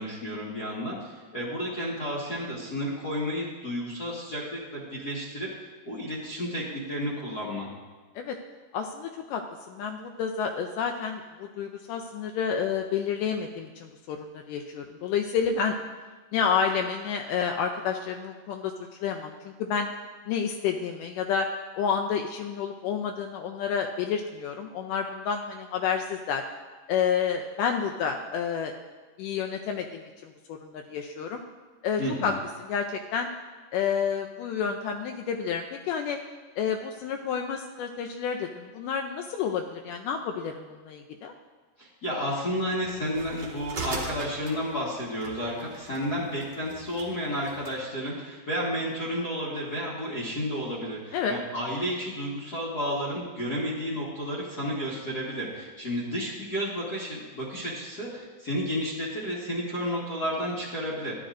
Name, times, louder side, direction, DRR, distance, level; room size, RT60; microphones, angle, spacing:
voice 1, 0.0-5.5 5.8-7.7 32.0-32.4 41.8-61.1, equal, 40° left, -8 dB, 1.4 m, -32 dB
voice 2, 8.7-9.4 9.7-15.8 16.3-18.7 19.0-19.9 20.3-21.5 21.8-26.4 26.9-28.7 29.2-31.4 31.8-32.3 32.6-33.3 33.7-36.2 36.6-41.3 51.1-51.4, left 7 dB, 80° left, 4 dB, 2.1 m, -29 dB
sound 1, 42.8-47.8, right 3 dB, 55° right, 1.3 m, -40 dB
13.0 x 10.0 x 2.5 m, 1.3 s
omnidirectional pair, 3.8 m